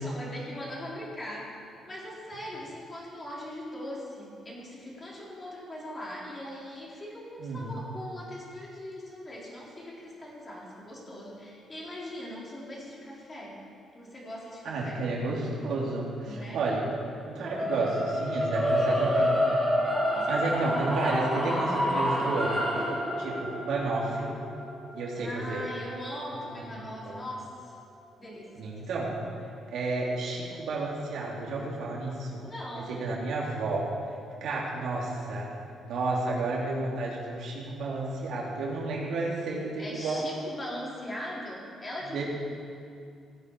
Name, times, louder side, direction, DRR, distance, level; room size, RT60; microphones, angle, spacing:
voice 1, 0.0-1.5 1.9-13.6 13.9-15.1 16.2-16.6 20.1-20.6 25.1-27.8 28.2-28.7 32.3-33.0 34.5-34.9 39.8-42.2, left 1 dB, 25° left, -5 dB, 4.1 m, -40 dB
voice 2, 7.4-7.7 14.6-16.8 17.3-19.4 20.3-22.6 23.2-24.3 24.9-25.6 27.0-27.1 28.6-29.2 29.7-32.4 32.9-33.9 34.4-35.5 35.8-40.2 42.1-42.2, right 2 dB, 75° right, -4 dB, 3.2 m, -31 dB
sound 1, 17.4-27.6, equal, ahead, 4.1 m, -29 dB
17.0 x 9.9 x 4.9 m, 2.4 s
cardioid pair, 90°, 0 cm